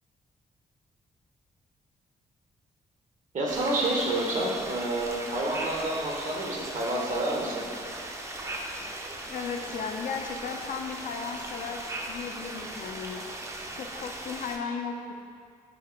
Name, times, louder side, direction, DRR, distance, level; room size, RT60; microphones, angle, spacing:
voice 1, 3.3-7.7, right 1 dB, 60° right, -3 dB, 0.8 m, -29 dB
sound 1, 3.5-14.6, right 1 dB, 20° right, 0.4 m, -38 dB
voice 2, 9.3-11.8 12.1-13.3 13.7-15.1, left 5 dB, 65° left, 4 dB, 0.4 m, -35 dB
4.8 x 2.2 x 3.1 m, 2.2 s
cardioid pair, 60°, 15 cm